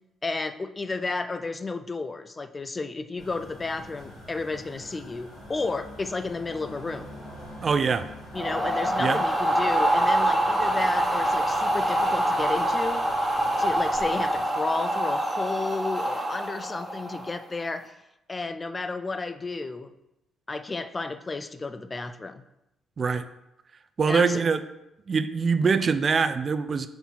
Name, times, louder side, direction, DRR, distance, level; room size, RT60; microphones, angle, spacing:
voice 1, 0.2-7.1 8.3-13.1 13.6-18.0 18.3-19.9 20.5-22.4 24.1-24.4, left 3 dB, 25° left, 10 dB, 0.4 m, -32 dB
sound 1, 3.2-14.4, left 1 dB, 90° left, 2.3 m, -44 dB
voice 2, 7.6-8.1 9.0-9.2 23.0-23.2 24.0-24.6 25.1-26.9, right 5 dB, 40° right, 10 dB, 0.4 m, -23 dB
sound 2, 8.3-17.4, right 1 dB, 5° right, 1.2 m, -25 dB
4.6 x 4.0 x 5.5 m, 0.89 s
cardioid pair, 90°, 0 cm